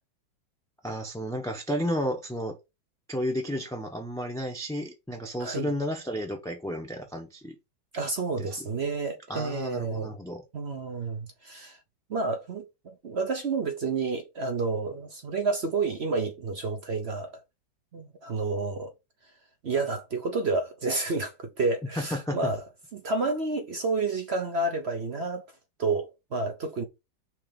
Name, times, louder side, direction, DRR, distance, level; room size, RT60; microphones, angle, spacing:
voice 1, 0.8-2.6 3.1-7.6 8.4-8.5 9.3-10.4 22.0-22.4, equal, 5° left, 0.7 m, -32 dB
voice 2, 5.4-5.7 7.9-10.1 10.5-11.8 12.1-17.3 17.9-18.9 19.6-22.6 22.9-25.4 25.8-26.8, right 3 dB, 50° right, 0.8 m, -30 dB
5.8 x 3.3 x 5.3 m
omnidirectional pair, 2.0 m